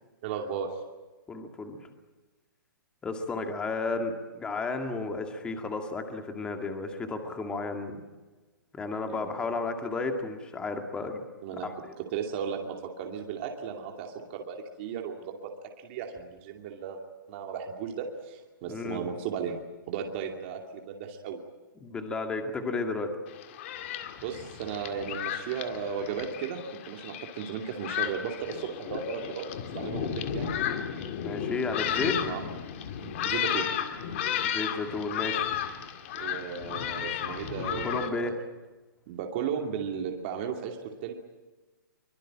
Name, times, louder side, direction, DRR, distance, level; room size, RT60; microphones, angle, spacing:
voice 1, 0.2-0.8 9.1-9.3 11.4-11.7 12.0-15.5 15.8-17.0 17.3-19.6 19.9-21.4 24.2-26.6 26.9-29.5 29.7-30.5 32.2-32.4 33.0-33.7 36.1-38.3 39.1-41.1, right 7 dB, 30° right, 2 dB, 2.6 m, -35 dB
voice 2, 1.3-1.8 3.0-8.0 8.7-11.2 11.6-11.7 18.7-19.1 21.8-23.1 31.2-32.2 34.5-35.5 37.8-38.3, left 3 dB, 10° left, 5 dB, 2.0 m, -33 dB
Thunderstorm, 23.3-38.1, left 9 dB, 35° left, 2.1 m, -33 dB
24.5 x 22.0 x 8.8 m, 1.2 s
hypercardioid pair, 165°, 11 cm